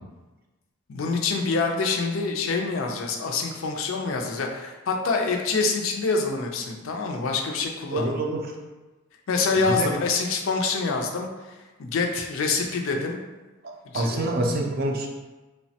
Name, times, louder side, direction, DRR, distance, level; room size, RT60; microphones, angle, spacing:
voice 1, 0.9-8.2 9.3-13.2 13.9-14.3, left 4 dB, 70° left, 2 dB, 0.4 m, -26 dB
voice 2, 7.9-8.4 9.6-9.9 13.9-15.1, right 2 dB, 45° right, 1 dB, 0.4 m, -26 dB
3.2 x 2.1 x 2.7 m, 1.2 s
head